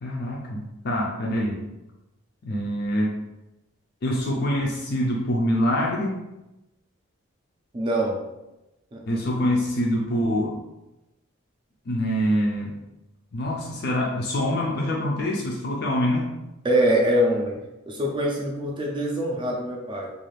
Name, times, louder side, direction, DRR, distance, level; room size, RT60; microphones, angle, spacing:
voice 1, 0.0-1.7 2.4-3.2 4.0-6.2 9.1-10.6 11.9-12.8 13.3-16.3, equal, 50° left, -2 dB, 0.4 m, -25 dB
voice 2, 7.7-8.2 8.9-9.2 16.6-17.6 17.9-20.1, equal, 20° right, -1 dB, 0.4 m, -24 dB
2.4 x 2.4 x 3.2 m, 0.96 s
head